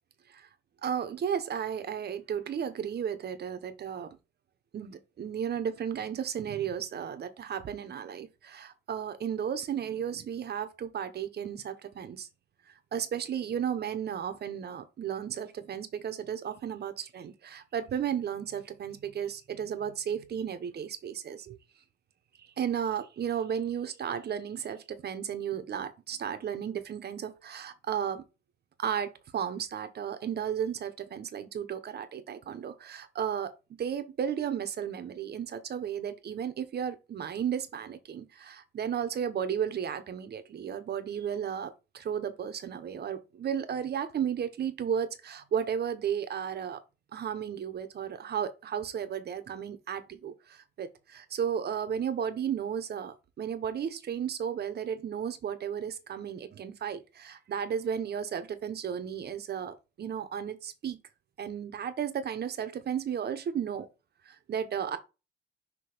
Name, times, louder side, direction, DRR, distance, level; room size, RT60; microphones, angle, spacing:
voice 1, 0.8-4.2 4.7-12.3 12.9-21.6 22.4-28.2 28.8-33.5 33.8-46.8 47.1-61.0 61.4-63.9 64.3-65.0, right 8 dB, 55° right, 1.1 m, -34 dB
6.1 x 3.1 x 5.0 m
cardioid pair, 90°, 20 cm